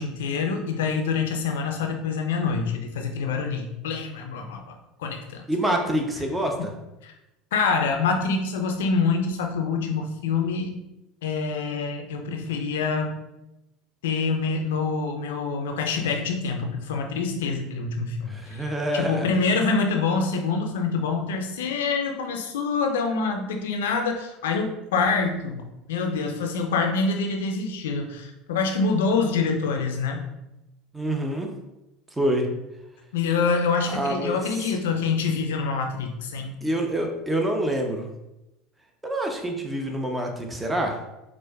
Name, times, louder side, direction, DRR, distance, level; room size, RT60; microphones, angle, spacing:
voice 1, 0.0-5.4 6.6-6.7 7.0-7.1 7.5-10.8 11.2-13.2 14.0-30.3 33.1-36.6, left 4 dB, 80° left, 4 dB, 0.5 m, -26 dB
voice 2, 5.5-6.7 18.3-19.3 30.9-31.5 32.2-32.5 33.9-34.7 36.6-38.1 39.0-41.0, right 1 dB, 10° right, 2 dB, 0.7 m, -26 dB
4.3 x 2.1 x 2.3 m, 0.93 s
hypercardioid pair, 85°, 0 cm